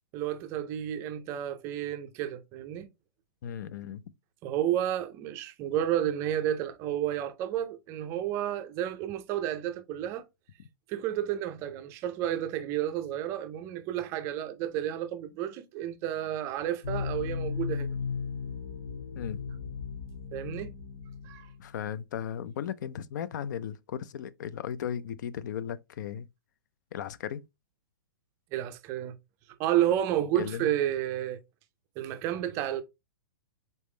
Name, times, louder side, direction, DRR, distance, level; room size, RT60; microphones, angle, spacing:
voice 1, 0.1-2.9 4.4-10.3 10.9-18.0 20.3-20.7 21.2-21.5 28.5-29.2 29.6-31.4 32.0-32.8, right 11 dB, 25° right, 0.4 m, -31 dB
voice 2, 3.4-4.0 19.2-19.4 21.6-26.3 26.9-27.4 30.3-30.7, left 9 dB, 55° left, 0.4 m, -36 dB
sound 1, 16.8-21.9, left 6 dB, 75° left, 1.4 m, -36 dB
4.1 x 3.5 x 3.1 m
hypercardioid pair, 160°, 12 cm